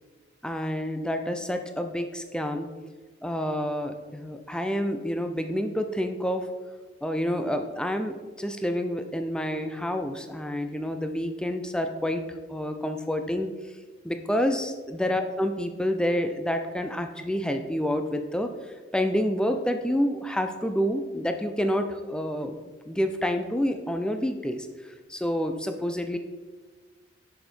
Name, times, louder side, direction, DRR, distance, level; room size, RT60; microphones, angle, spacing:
voice 1, 0.4-2.7 3.2-6.5 7.0-12.2 12.5-13.5 14.0-18.5 18.9-24.7 25.1-26.2, equal, 5° left, 6 dB, 0.4 m, -28 dB
6.6 x 6.3 x 4.3 m, 1.3 s
head